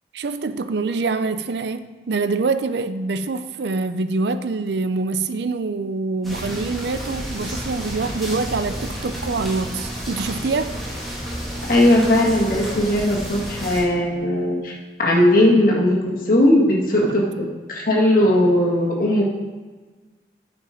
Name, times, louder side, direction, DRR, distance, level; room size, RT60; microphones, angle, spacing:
voice 1, 0.1-10.8 17.0-17.1, right 3 dB, 70° right, 11 dB, 0.5 m, -25 dB
sound 1, 6.2-13.8, equal, ahead, 2.2 m, -31 dB
voice 2, 11.7-14.7 15.0-19.3, left 1 dB, 50° left, -3 dB, 1.8 m, -18 dB
9.4 x 5.1 x 5.1 m, 1.4 s
head